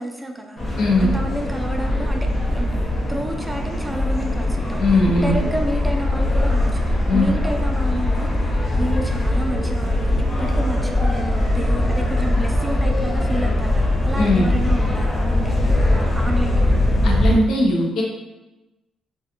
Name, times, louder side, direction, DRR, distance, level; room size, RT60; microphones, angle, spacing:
voice 1, 0.0-2.7 3.1-16.7, right 1 dB, 10° right, 2 dB, 0.3 m, -30 dB
sound 1, 0.6-17.3, left 1 dB, 30° left, 1.0 m, -21 dB
voice 2, 0.8-1.1 4.8-5.4 7.1-7.3 14.2-14.5 17.0-18.0, left 2 dB, 75° left, -1 dB, 0.6 m, -19 dB
2.4 x 2.3 x 2.8 m, 1.0 s
cardioid pair, 90°, 0 cm